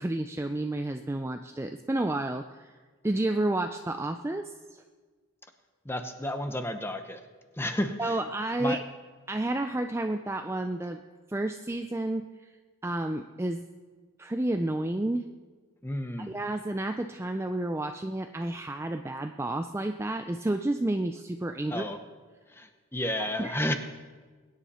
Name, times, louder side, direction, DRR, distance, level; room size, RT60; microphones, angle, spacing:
voice 1, 0.0-2.7 3.0-4.8 8.0-8.8 9.3-11.0 11.3-12.5 12.8-13.6 14.2-15.3 16.2-21.9 23.2-23.6, right 1 dB, 10° right, 6 dB, 0.3 m, -31 dB
voice 2, 5.8-7.2 7.6-8.2 8.6-8.8 15.8-16.4 21.7-22.0 22.5-23.7, left 1 dB, 10° left, 8 dB, 0.8 m, -32 dB
22.0 x 9.9 x 4.3 m, 1.4 s
head